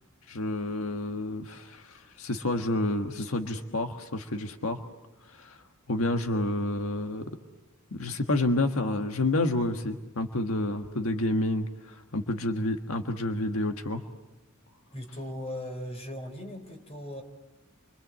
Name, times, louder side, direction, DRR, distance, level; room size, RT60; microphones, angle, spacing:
voice 1, 0.3-4.8 5.2-5.6 5.9-7.4 7.9-14.0, left 2 dB, 85° left, 6 dB, 1.5 m, -29 dB
voice 2, 14.9-17.2, left 1 dB, 30° left, 5 dB, 4.4 m, -38 dB
29.0 x 25.0 x 7.6 m, 1.1 s
head